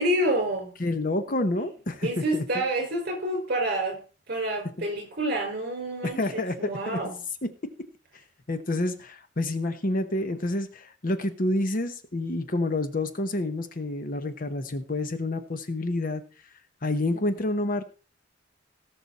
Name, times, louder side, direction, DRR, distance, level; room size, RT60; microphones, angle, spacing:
voice 1, 0.0-0.7 2.0-4.0 4.3-7.2, right 1 dB, 50° right, 5.2 m, -28 dB
voice 2, 0.8-2.4 6.0-7.0 7.4-7.5 8.5-16.2 16.8-17.8, left 2 dB, 45° left, 1.0 m, -28 dB
18.0 x 6.0 x 4.2 m
head